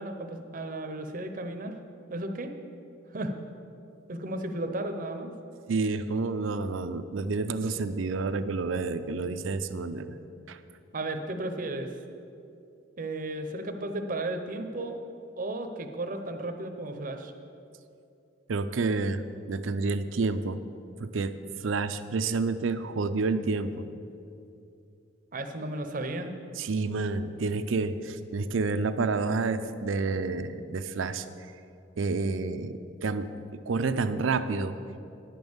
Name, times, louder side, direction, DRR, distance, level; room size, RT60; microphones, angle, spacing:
voice 1, 0.0-1.8 2.1-2.5 3.1-3.3 4.1-5.3 10.9-12.0 13.0-15.0 15.4-17.3 25.3-26.4, right 2 dB, 40° right, 5 dB, 0.7 m, -34 dB
voice 2, 5.7-10.1 10.5-10.6 18.5-20.6 21.0-21.3 21.6-23.9 26.6-31.2 32.0-34.8, right 3 dB, 80° right, 11 dB, 0.5 m, -29 dB
10.0 x 5.4 x 7.9 m, 2.6 s
head